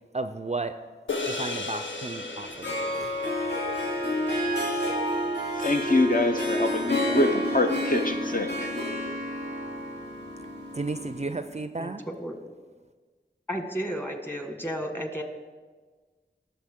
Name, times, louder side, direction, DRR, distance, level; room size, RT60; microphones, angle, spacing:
voice 1, 0.1-0.8 1.2-3.1 10.7-12.0, right 3 dB, 35° right, 10 dB, 0.4 m, -33 dB
sound 1, 1.1-5.7, left 3 dB, 85° left, 0.7 m, -36 dB
Harp, 2.4-11.3, left 1 dB, 65° left, 2.6 m, -29 dB
voice 2, 5.5-8.7, left 2 dB, 45° left, 5 dB, 0.6 m, -25 dB
voice 3, 13.5-15.2, equal, 10° left, 4 dB, 1.5 m, -32 dB
18.5 x 6.9 x 3.6 m, 1.4 s
wide cardioid pair, 45°, 19 cm